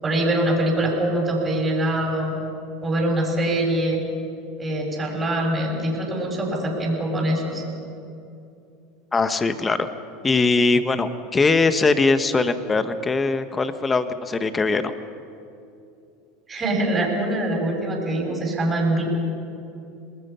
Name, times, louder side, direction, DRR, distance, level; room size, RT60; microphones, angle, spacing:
voice 1, 0.0-2.3 2.8-4.0 4.6-7.6 16.5-19.0, right 1 dB, 20° right, 0 dB, 6.5 m, -23 dB
voice 2, 9.1-9.9 10.2-14.9, left 3 dB, 20° left, 10 dB, 1.3 m, -21 dB
27.5 x 20.0 x 5.7 m, 2.6 s
supercardioid pair, 110°, 0 cm